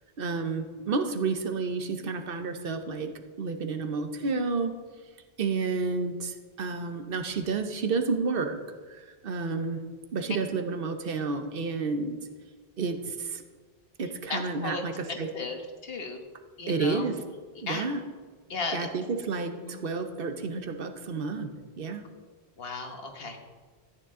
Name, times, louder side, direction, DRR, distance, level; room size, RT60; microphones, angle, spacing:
voice 1, 0.2-3.1 3.4-4.7 5.4-8.6 8.9-9.8 10.1-12.2 12.8-13.4 14.0-15.3 16.7-17.2 17.6-18.0 18.7-22.0, right 4 dB, 60° right, 7 dB, 1.0 m, -30 dB
voice 2, 14.3-14.8 15.1-16.2 16.6-17.1 17.7-17.8 18.5-18.9 19.5-19.8 22.6-23.4, left 3 dB, 60° left, 4 dB, 1.4 m, -35 dB
14.0 x 9.4 x 3.7 m, 1.5 s
omnidirectional pair, 1.1 m